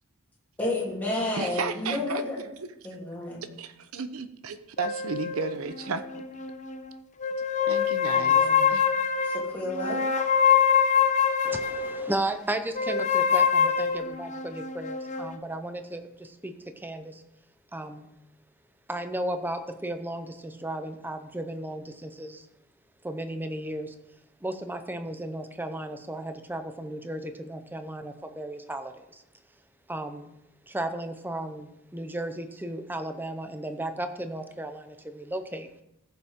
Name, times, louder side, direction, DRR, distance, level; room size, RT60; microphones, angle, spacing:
voice 1, 0.6-2.4 2.8-3.4 8.0-8.7 9.2-10.1, left 2 dB, 10° left, -6 dB, 3.1 m, -31 dB
voice 2, 1.3-2.2 3.6-6.1 7.7-8.9, right 4 dB, 75° right, 11 dB, 0.8 m, -33 dB
sound 1, 4.8-6.8 7.2-12.1 12.8-15.4, left 7 dB, 35° left, 0.7 m, -25 dB
voice 3, 11.4-17.2 17.7-18.1 18.9-22.5 23.0-23.9 24.4-29.2 29.9-30.3 30.7-35.8, right 1 dB, 10° right, 8 dB, 0.7 m, -35 dB
15.0 x 6.9 x 3.7 m, 0.85 s
head